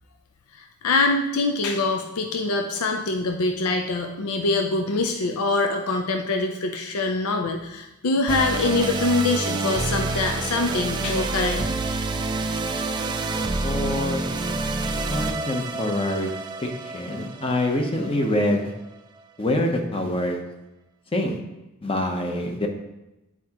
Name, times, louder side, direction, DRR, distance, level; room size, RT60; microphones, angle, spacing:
voice 1, 0.6-11.7, left 3 dB, 80° left, 4 dB, 0.5 m, -24 dB
sound 1, 8.3-18.6, right 3 dB, 20° right, 0.3 m, -28 dB
voice 2, 13.6-14.3 15.1-16.3 16.6-18.7 19.4-20.4 21.1-21.4 21.8-22.7, left 1 dB, 25° left, 3 dB, 0.7 m, -25 dB
8.5 x 4.8 x 2.9 m, 0.96 s
head